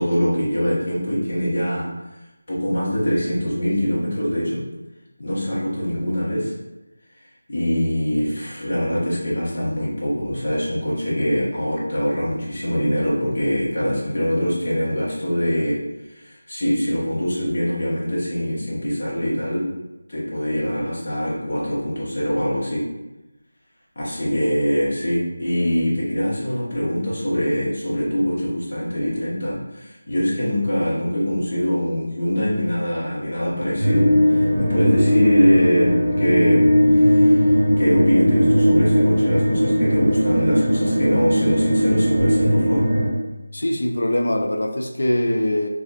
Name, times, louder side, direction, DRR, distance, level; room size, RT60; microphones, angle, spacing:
voice 1, 0.0-1.9 2.5-4.6 5.2-6.5 7.5-15.8 16.1-19.7 20.1-22.9 24.0-36.6 36.9-37.5 37.8-42.9, equal, 35° left, -7 dB, 0.9 m, -23 dB
sound 1, 33.8-43.1, equal, 5° left, 1.4 m, -18 dB
voice 2, 43.5-45.7, left 1 dB, 55° left, 4 dB, 0.4 m, -22 dB
3.9 x 2.4 x 2.3 m, 1.0 s
figure-of-eight pair, 180°, 0 cm